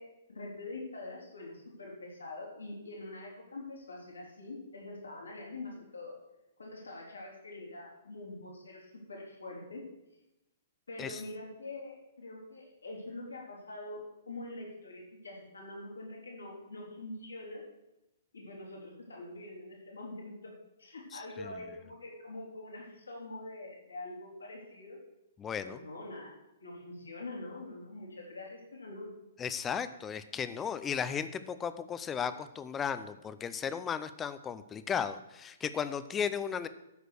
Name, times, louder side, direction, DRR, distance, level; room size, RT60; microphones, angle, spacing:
voice 1, 0.0-6.1 6.6-9.9 10.9-14.0 14.3-17.6 18.3-25.0 25.6-29.1, left 2 dB, 90° left, -2 dB, 3.7 m, -44 dB
voice 2, 21.1-21.5 25.4-25.8 29.4-36.7, left 7 dB, 20° left, 13 dB, 0.7 m, -35 dB
13.0 x 5.1 x 6.5 m, 0.93 s
hypercardioid pair, 125°, 0 cm